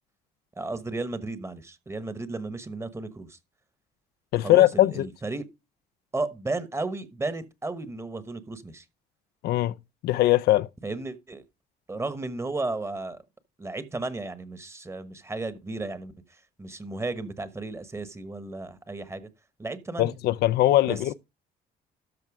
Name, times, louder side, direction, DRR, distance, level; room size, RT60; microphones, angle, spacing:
voice 1, 0.6-3.4 4.4-5.5 6.1-8.8 10.8-11.4 11.9-13.2 13.6-16.1 16.6-19.3 19.6-20.1 20.9-21.0, right 2 dB, 15° right, 1.1 m, -34 dB
voice 2, 4.3-5.1 9.4-9.7 10.0-10.7 20.0-21.1, left 15 dB, 70° left, 0.5 m, -21 dB
13.0 x 4.5 x 4.8 m
cardioid pair, 110°, 17 cm